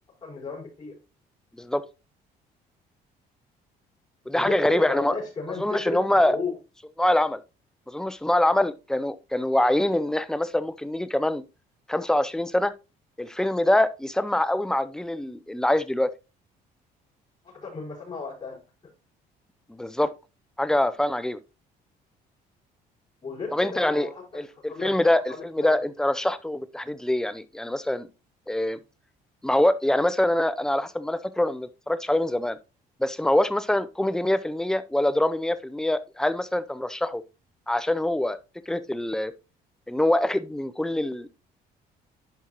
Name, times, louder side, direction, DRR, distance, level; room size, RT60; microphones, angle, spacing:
voice 1, 0.2-0.9 4.3-6.5 17.4-18.9 23.2-24.9 25.3-25.8, left 4 dB, 30° left, 5.0 m, -34 dB
voice 2, 4.3-5.1 5.6-6.4 7.0-7.4 7.9-11.4 11.9-12.7 13.2-16.1 19.7-20.1 20.6-21.4 23.5-24.1 24.3-28.1 28.5-28.8 29.4-32.6 33.0-37.2 37.7-38.4 38.7-39.3 39.9-41.4, left 1 dB, 5° left, 0.6 m, -24 dB
11.0 x 5.5 x 3.0 m
cardioid pair, 110°, 17 cm